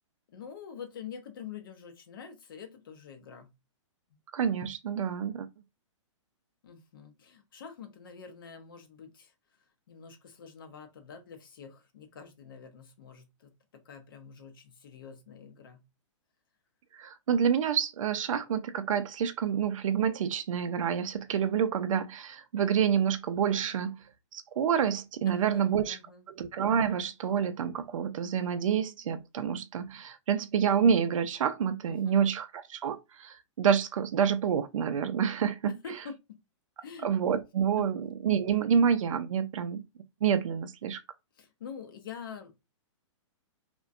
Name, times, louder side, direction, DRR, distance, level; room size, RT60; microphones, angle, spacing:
voice 1, 0.3-3.5 6.6-9.3 9.9-15.8 25.3-26.2 31.9-32.2 35.6-36.4 36.8-37.1 37.8-37.9 41.4-42.5, left 7 dB, 45° left, 0.5 m, -46 dB
voice 2, 4.3-5.5 17.0-23.9 24.3-26.0 26.4-35.7 37.0-39.8 40.2-41.0, right 7 dB, 85° right, 0.4 m, -28 dB
2.5 x 2.1 x 2.3 m
hypercardioid pair, 175°, 16 cm